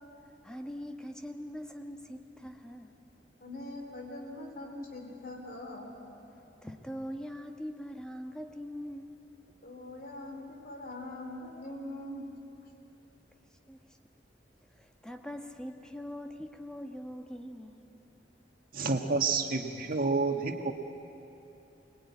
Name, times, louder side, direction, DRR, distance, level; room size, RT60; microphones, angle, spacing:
voice 1, 0.4-2.9 6.6-9.2 13.7-13.8 14.7-17.8, equal, 5° left, 4 dB, 1.3 m, -42 dB
voice 2, 3.4-5.9 9.6-12.3, left 1 dB, 55° left, 1 dB, 3.4 m, -42 dB
voice 3, 18.7-20.7, right 4 dB, 55° right, 4 dB, 1.6 m, -29 dB
24.5 x 20.0 x 9.6 m, 2.9 s
head